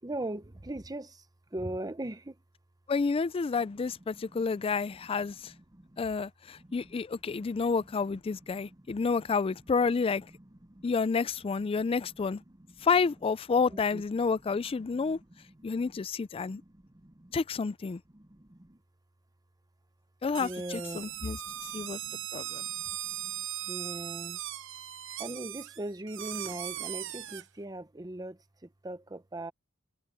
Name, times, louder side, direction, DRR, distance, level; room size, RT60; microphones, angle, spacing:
voice 1, 0.0-2.4 3.6-6.1 6.6-10.9 11.5-12.9 13.7-16.0 16.4-17.4 18.1-18.8 20.4-24.4 25.2-29.5, right 1 dB, 20° right, 0.8 m, -43 dB
voice 2, 2.9-5.5 6.0-10.3 10.8-12.4 12.8-15.2 15.6-16.6 17.3-18.0 20.2-21.4 21.7-22.0 22.3-22.6, left 5 dB, 25° left, 0.3 m, -29 dB
sound 1, 20.3-27.4, right 13 dB, 65° right, 0.7 m, -39 dB
head